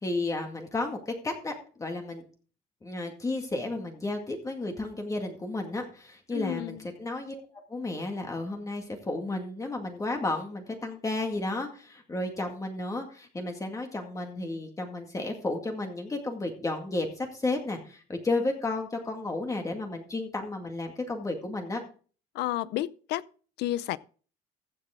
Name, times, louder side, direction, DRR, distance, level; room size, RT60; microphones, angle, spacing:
voice 1, 0.0-1.5 1.8-2.2 2.8-7.4 7.7-21.8, left 2 dB, 20° left, 2.0 m, -32 dB
voice 2, 6.3-6.8 22.3-23.2 23.6-24.0, left 15 dB, 70° left, 0.6 m, -31 dB
15.0 x 7.6 x 3.7 m
cardioid pair, 125°, 18 cm